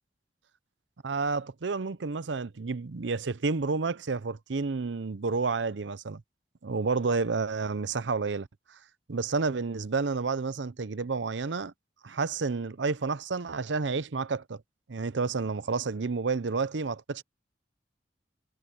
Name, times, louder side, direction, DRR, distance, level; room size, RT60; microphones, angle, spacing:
voice 1, 1.0-6.2 6.6-8.5 9.1-11.7 12.0-14.6 14.9-17.2, right 4 dB, 85° right, 0.7 m, -30 dB
head